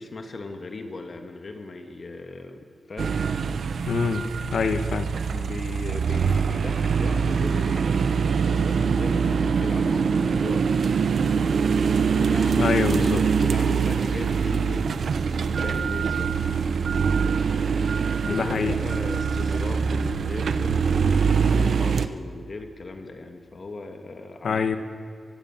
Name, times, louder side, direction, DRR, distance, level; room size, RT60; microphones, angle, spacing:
voice 1, 0.0-3.1 3.6-3.7 5.3-10.8 12.1-16.4 18.2-24.7, left 3 dB, 45° left, 5 dB, 2.2 m, -38 dB
sound 1, 3.0-22.1, right 6 dB, 75° right, 0.9 m, -23 dB
voice 2, 3.9-4.2 4.5-5.0 12.6-13.2 18.3-18.8 24.4-24.8, left 5 dB, 75° left, 8 dB, 1.8 m, -24 dB
24.5 x 21.0 x 7.6 m, 2.2 s
wide cardioid pair, 115°, 0 cm